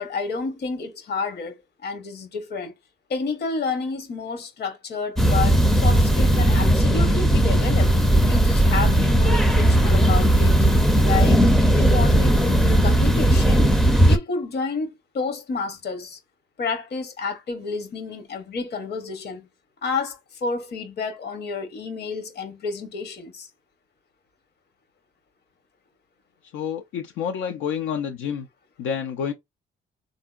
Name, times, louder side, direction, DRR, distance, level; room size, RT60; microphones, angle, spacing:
voice 1, 0.0-2.7 3.1-7.9 8.3-10.6 11.0-13.7 14.1-16.2 16.6-19.5 19.8-23.5, left 4 dB, 55° left, 0.9 m, -30 dB
sound 1, 5.2-14.2, right 1 dB, ahead, 0.4 m, -17 dB
voice 2, 26.5-28.5 28.8-29.3, left 7 dB, 85° left, 0.4 m, -28 dB
3.5 x 2.7 x 2.3 m
cardioid pair, 90°, 20 cm